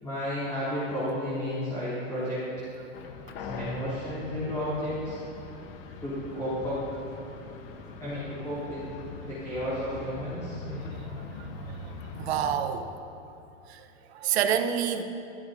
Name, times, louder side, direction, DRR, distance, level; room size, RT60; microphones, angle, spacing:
voice 1, 0.0-2.4 3.4-5.2 6.0-6.8 8.0-8.8 9.2-10.9, equal, 10° left, -12 dB, 3.6 m, -32 dB
sound 1, 2.9-12.6, left 4 dB, 45° left, 1.3 m, -42 dB
voice 2, 10.9-12.9 13.7-15.0, right 9 dB, 55° right, 7 dB, 1.1 m, -30 dB
23.5 x 14.5 x 2.8 m, 2.7 s
supercardioid pair, 160°, 38 cm